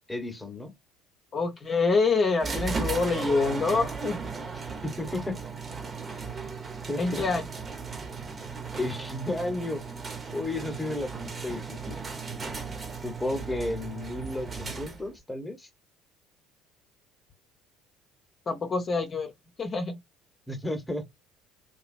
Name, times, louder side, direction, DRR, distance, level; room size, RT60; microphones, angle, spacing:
voice 1, 0.1-0.7 4.8-5.4 6.4-6.5 6.9-7.2 8.8-9.8 10.3-12.0 13.0-15.7 20.5-21.2, left 2 dB, 10° left, 1.1 m, -33 dB
voice 2, 1.3-4.2 7.0-7.4 18.5-19.3 19.6-20.0, left 4 dB, 40° left, 0.8 m, -26 dB
sound 1, 2.4-15.2, right 4 dB, 30° right, 1.1 m, -36 dB
2.9 x 2.4 x 2.5 m
hypercardioid pair, 65°, 0 cm